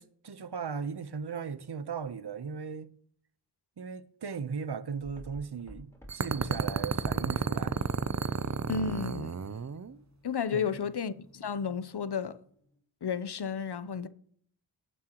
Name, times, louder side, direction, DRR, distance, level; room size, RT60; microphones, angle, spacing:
voice 1, 0.0-2.9 3.8-7.8 10.5-10.8, right 6 dB, 60° right, 0.9 m, -37 dB
sound 1, 5.0-12.8, equal, 5° left, 3.9 m, -53 dB
sound 2, 6.1-9.9, right 6 dB, 40° right, 0.6 m, -31 dB
voice 2, 8.7-9.4 10.2-12.4 13.0-14.1, left 6 dB, 60° left, 0.8 m, -32 dB
19.0 x 7.7 x 3.0 m
wide cardioid pair, 45°, 46 cm